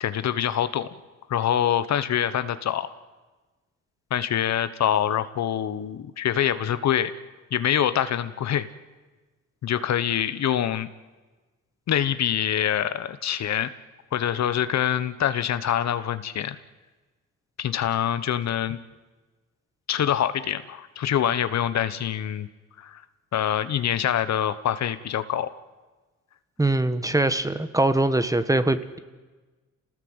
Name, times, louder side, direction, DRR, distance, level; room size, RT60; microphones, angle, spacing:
voice 1, 0.0-0.9 1.3-2.9 4.1-7.1 7.5-8.7 9.6-10.9 11.9-13.7 14.1-16.6 17.6-18.8 19.9-22.5 22.8-23.0 23.3-25.5, left 10 dB, 60° left, 13 dB, 1.2 m, -25 dB
voice 2, 26.6-29.0, right 2 dB, 10° right, 11 dB, 1.4 m, -22 dB
28.0 x 18.5 x 8.1 m, 1.3 s
cardioid pair, 90°, 30 cm